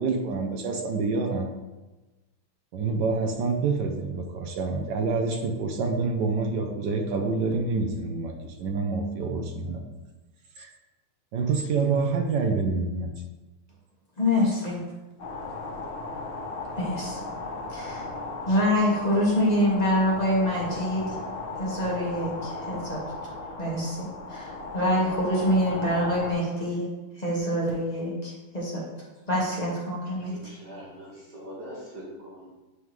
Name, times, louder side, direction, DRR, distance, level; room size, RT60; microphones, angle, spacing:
voice 1, 0.0-1.5 2.7-9.8 10.6-10.7 11.3-13.1, right 4 dB, 70° right, 4 dB, 1.1 m, -27 dB
voice 2, 14.2-14.8 16.7-17.2 17.7-18.0 18.5-21.2 21.6-23.3 23.6-26.8 27.2-28.8 29.3-30.4, equal, 25° left, -5 dB, 1.2 m, -26 dB
sound 1, 15.2-26.3, left 3 dB, 50° left, 1.0 m, -36 dB
voice 3, 30.3-32.5, equal, 50° right, -10 dB, 2.2 m, -42 dB
9.9 x 3.6 x 3.1 m, 1.1 s
omnidirectional pair, 2.4 m